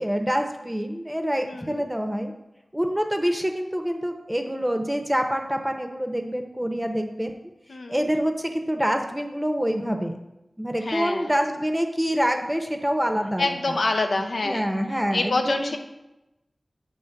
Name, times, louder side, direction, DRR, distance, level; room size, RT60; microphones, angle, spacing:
voice 1, 0.0-2.3 2.7-7.3 7.9-10.1 10.6-13.8 14.4-15.8, equal, 10° right, 4 dB, 0.7 m, -26 dB
voice 2, 1.5-1.8 7.7-8.1 10.8-11.3 13.4-14.7 15.1-15.8, left 2 dB, 90° left, 5 dB, 0.6 m, -26 dB
7.0 x 3.1 x 5.8 m, 0.95 s
wide cardioid pair, 70°, 0 cm